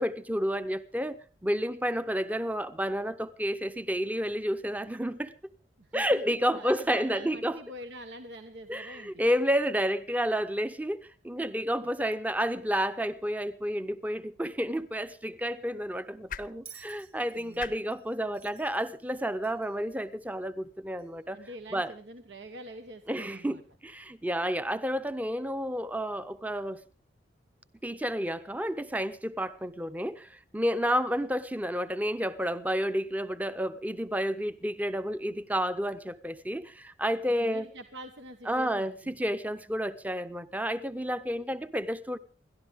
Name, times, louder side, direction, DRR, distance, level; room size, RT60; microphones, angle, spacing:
voice 1, 0.0-5.3 5.9-7.6 8.7-21.4 21.7-21.9 23.1-26.8 27.8-37.7 38.5-42.2, equal, 10° right, 0.7 m, -30 dB
voice 2, 5.8-9.3 17.3-17.7 21.3-23.6 37.3-39.2, right 1 dB, 80° right, 1.3 m, -45 dB
sound 1, 14.5-20.7, left 7 dB, 50° left, 0.7 m, -49 dB
Bell, 16.6-19.8 21.0-21.1, right 7 dB, 35° right, 1.7 m, -53 dB
28.5 x 12.5 x 3.6 m
head